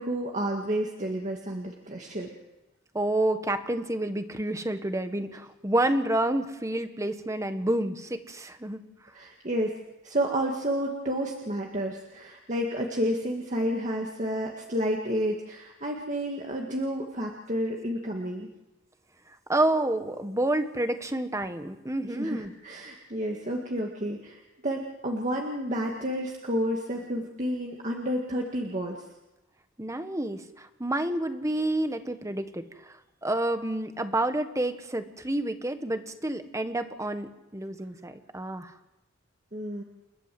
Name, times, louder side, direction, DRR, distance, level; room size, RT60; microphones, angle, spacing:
voice 1, 0.0-2.3 9.1-9.8 10.0-18.5 22.0-29.0 39.5-39.8, equal, 40° right, 0 dB, 2.0 m, -30 dB
voice 2, 2.9-8.8 19.5-22.5 29.8-38.7, right 1 dB, 15° right, 8 dB, 1.4 m, -29 dB
29.5 x 13.0 x 7.8 m, 0.98 s
head